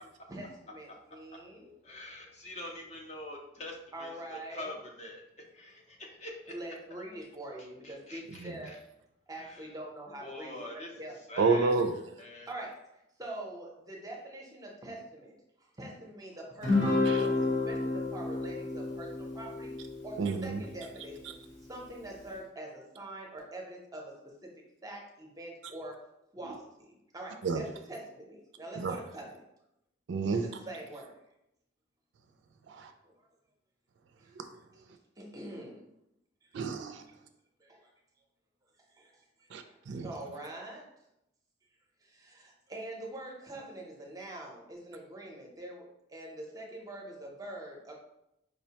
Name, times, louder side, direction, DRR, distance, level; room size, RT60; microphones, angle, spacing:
voice 1, 0.3-1.7 3.9-4.7 6.5-8.8 9.3-10.6 11.0-11.1 12.5-12.8 13.2-15.3 15.8-19.8 20.0-21.3 21.7-24.1 24.8-26.0 26.3-26.9 27.1-29.4 30.3-31.1 35.2-35.8 39.0-39.1 40.0-40.8 42.1-45.8 46.1-47.9, right 1 dB, 20° right, 0 dB, 0.6 m, -44 dB
voice 2, 1.8-6.6 7.6-8.8 9.3-9.7 10.2-11.9 12.2-12.5, left 1 dB, 35° left, 1 dB, 0.5 m, -45 dB
voice 3, 11.4-11.9 17.0-17.3 20.2-20.6 27.4-27.6 28.8-29.0 30.1-30.4 32.7-32.9 34.4-34.5 36.5-37.0 39.5-40.1, right 4 dB, 70° right, 7 dB, 0.3 m, -30 dB
Guitar, 16.6-21.2, left 3 dB, 70° left, 1.0 m, -31 dB
4.9 x 2.1 x 2.8 m, 0.84 s
head